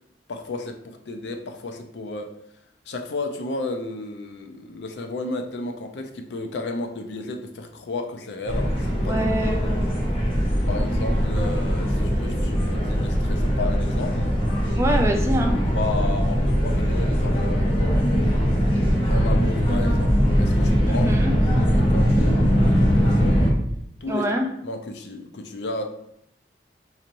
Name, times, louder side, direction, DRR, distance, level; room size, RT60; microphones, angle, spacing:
voice 1, 0.3-2.3 2.9-9.2 9.6-9.7 10.7-14.3 15.7-18.0 19.1-21.1 21.7-23.5 24.0-24.2 24.6-25.8, left 2 dB, 75° left, 5 dB, 0.5 m, -33 dB
sound 1, 8.5-23.5, equal, 30° left, 0.9 m, -21 dB
voice 2, 9.1-9.8 14.7-15.6 20.9-21.3 24.1-24.5, right 1 dB, 15° right, 2 dB, 0.3 m, -24 dB
4.1 x 2.9 x 2.5 m, 0.75 s
head